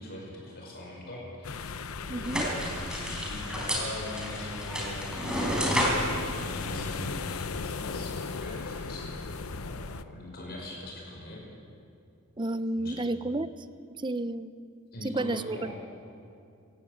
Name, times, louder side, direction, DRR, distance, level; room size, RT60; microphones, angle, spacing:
voice 1, 0.0-5.5 6.3-11.4 12.8-13.0 14.9-15.8, left 1 dB, 50° left, -2 dB, 5.6 m, -42 dB
sound 1, 1.4-10.0, left 5 dB, 75° left, 0.8 m, -37 dB
voice 2, 2.1-2.4 12.4-13.5 14.0-14.5 15.0-15.7, right 2 dB, 20° right, 14 dB, 0.6 m, -31 dB
sound 2, 2.2-7.5, equal, 5° right, 4.4 m, -31 dB
25.5 x 15.5 x 8.5 m, 2.5 s
head